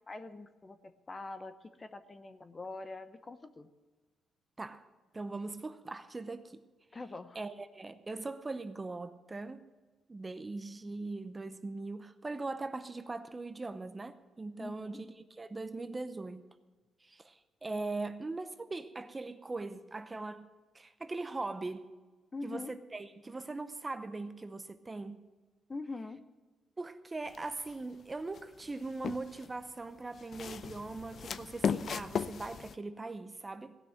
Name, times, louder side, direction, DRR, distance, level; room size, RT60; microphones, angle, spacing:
voice 1, 0.1-3.7 6.9-7.4 14.6-15.0 22.3-22.7 25.7-26.2, left 3 dB, 25° left, 0.8 m, -44 dB
voice 2, 5.1-6.6 7.3-9.7 10.1-16.5 17.0-20.5 20.7-21.9 22.4-25.2 26.8-33.8, right 3 dB, 20° right, 0.7 m, -40 dB
sound 1, 27.3-27.7 28.3-29.5 30.1-32.7, left 7 dB, 55° left, 0.5 m, -36 dB
17.0 x 6.2 x 9.0 m
cardioid pair, 90°, 0 cm